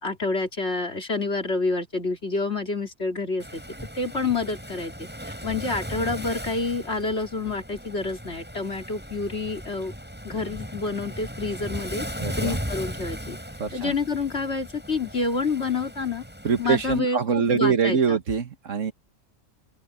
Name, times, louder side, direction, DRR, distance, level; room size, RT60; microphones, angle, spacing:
voice 1, 0.0-3.6 4.0-9.9 10.2-12.1 12.4-13.4 13.7-16.2 16.6-18.2, left 3 dB, 55° left, 3.6 m, -28 dB
Waves surf, 3.4-17.0, equal, 5° right, 7.0 m, -37 dB
voice 2, 12.2-12.6 13.6-14.0 16.4-18.9, right 6 dB, 70° right, 1.8 m, -24 dB
open air
omnidirectional pair, 1.3 m